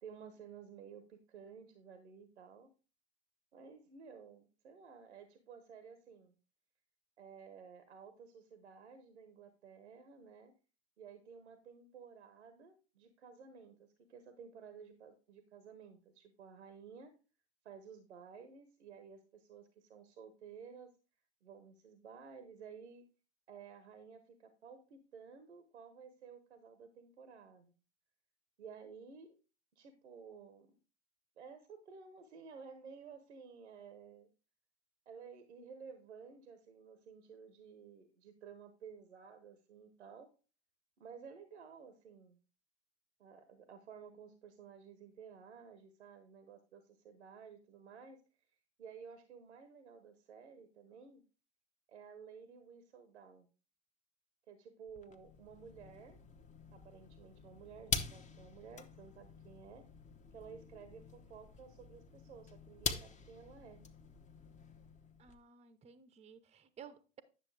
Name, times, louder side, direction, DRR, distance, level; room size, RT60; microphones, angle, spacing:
voice 1, 0.0-2.7 3.5-6.3 7.2-10.5 11.0-17.1 17.6-20.9 21.4-23.0 23.5-27.7 28.6-29.3 29.7-30.7 31.4-34.3 35.1-40.3 41.0-42.4 43.2-48.2 48.8-51.2 51.9-53.5 54.5-56.2 56.7-59.8 60.3-63.8, right 6 dB, 90° right, 1.1 m, -54 dB
sound 1, 54.9-65.4, left 5 dB, 20° left, 1.0 m, -45 dB
voice 2, 65.2-67.2, right 7 dB, 20° right, 0.8 m, -55 dB
9.7 x 6.8 x 3.3 m
hypercardioid pair, 90°, 33 cm